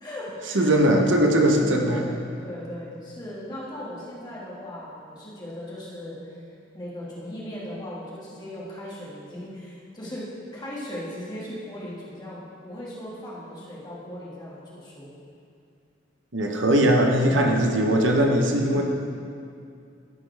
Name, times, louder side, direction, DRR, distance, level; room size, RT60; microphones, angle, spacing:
voice 1, 0.0-0.7 1.4-6.2 6.7-10.3 10.5-15.1 17.2-17.6 18.7-18.8, left 1 dB, 20° left, -7 dB, 2.0 m, -38 dB
voice 2, 0.5-2.0 16.3-18.8, right 1 dB, 80° right, 2 dB, 1.0 m, -20 dB
15.0 x 5.6 x 3.4 m, 2.4 s
head